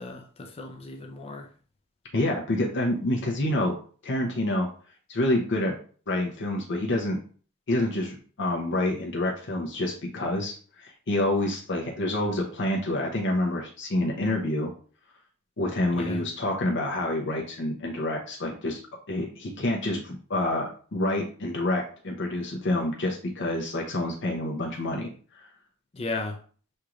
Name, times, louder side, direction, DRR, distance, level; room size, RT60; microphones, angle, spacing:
voice 1, 0.0-1.5 15.9-16.3 25.9-26.4, left 3 dB, 25° left, 3 dB, 0.4 m, -35 dB
voice 2, 2.1-3.7 4.0-4.7 5.1-5.7 6.1-7.2 7.7-14.7 15.6-18.8 19.1-25.1 25.4-25.5, left 1 dB, 55° left, -1 dB, 0.7 m, -27 dB
6.4 x 2.4 x 2.9 m, 0.43 s
head